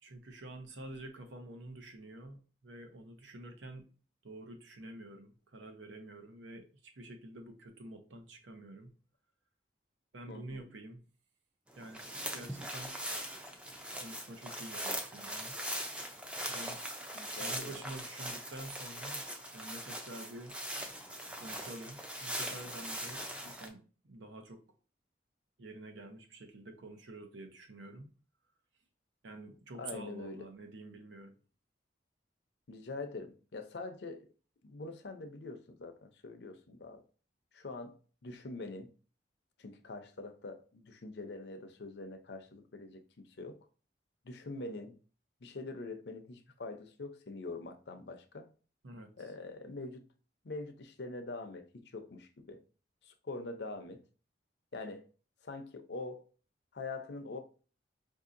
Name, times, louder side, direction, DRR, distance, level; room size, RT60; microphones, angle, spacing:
voice 1, 0.0-3.9 4.2-8.9 10.1-11.0 11.8-13.0 14.0-15.6 16.5-16.8 17.4-20.6 21.4-24.6 25.6-28.1 29.2-31.3 48.8-49.1, right 2 dB, 90° right, 0.7 m, -48 dB
voice 2, 10.3-10.7 17.1-17.8 23.4-23.6 29.8-30.5 32.7-34.3 34.6-37.0 37.5-38.9 39.6-43.7 44.2-45.0 45.4-48.5 49.2-50.1 50.4-52.6 53.0-54.0 54.7-55.1 55.4-56.3 56.7-57.4, left 3 dB, 65° left, 0.6 m, -44 dB
sound 1, 11.7-23.7, equal, 5° right, 0.4 m, -41 dB
5.0 x 2.7 x 2.5 m
head